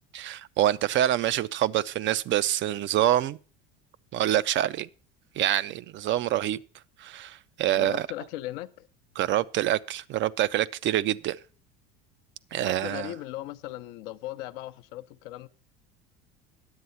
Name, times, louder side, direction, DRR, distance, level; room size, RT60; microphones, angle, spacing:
voice 1, 0.1-3.4 4.1-4.9 5.4-6.6 7.0-8.1 9.2-11.4 12.5-13.1, right 12 dB, 40° right, 0.4 m, -26 dB
voice 2, 7.7-8.9 12.6-15.5, left 15 dB, 70° left, 0.7 m, -38 dB
9.5 x 7.7 x 5.4 m
hypercardioid pair, 85°, 30 cm